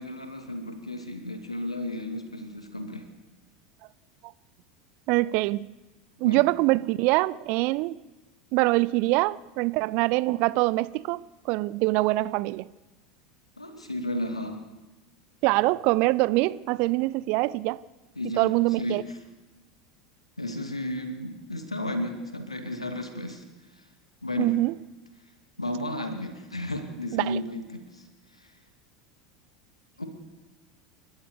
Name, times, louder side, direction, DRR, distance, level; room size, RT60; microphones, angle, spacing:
voice 1, 0.0-3.1 6.2-6.4 13.6-14.6 18.2-18.5 18.8-19.0 20.4-23.4 23.7-23.8 24.2-24.5 25.6-28.1 28.3-28.5 30.0-30.1, left 1 dB, 85° left, 2.5 m, -33 dB
voice 2, 5.1-5.7 6.2-8.0 8.5-12.7 15.4-17.8 18.4-19.0 24.4-24.7 27.1-27.4, right 20 dB, 50° right, 0.6 m, -24 dB
29.5 x 12.5 x 7.1 m
figure-of-eight pair, 80°, 3 cm